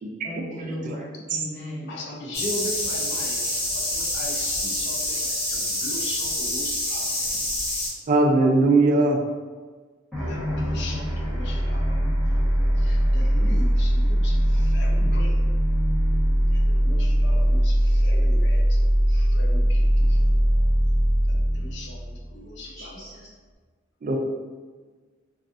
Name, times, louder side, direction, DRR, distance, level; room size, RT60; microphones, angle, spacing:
voice 1, 0.2-1.9 22.4-23.3, equal, 20° left, -12 dB, 1.3 m, -37 dB
voice 2, 1.9-7.2 8.9-9.0 10.2-12.0 12.8-15.4 16.5-18.8 19.1-20.3 21.3-23.1, left 1 dB, 65° left, -1 dB, 0.5 m, -39 dB
sound 1, 2.3-7.9, left 1 dB, 85° left, 1.2 m, -27 dB
voice 3, 8.1-9.2 24.0-24.2, right 2 dB, 45° right, 1 dB, 0.3 m, -19 dB
sound 2, 10.1-22.8, equal, ahead, 1.0 m, -21 dB
2.5 x 2.3 x 2.4 m, 1.4 s
head